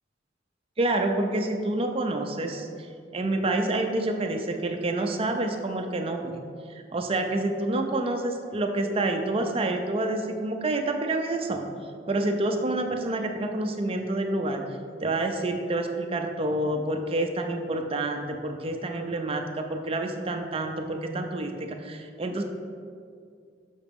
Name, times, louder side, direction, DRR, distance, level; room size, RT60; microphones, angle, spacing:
voice 1, 0.8-2.7 3.1-6.4 6.7-11.7 12.1-14.6 15.0-22.4, right 2 dB, 30° right, 5 dB, 0.5 m, -28 dB
6.2 x 5.8 x 3.5 m, 2.3 s
head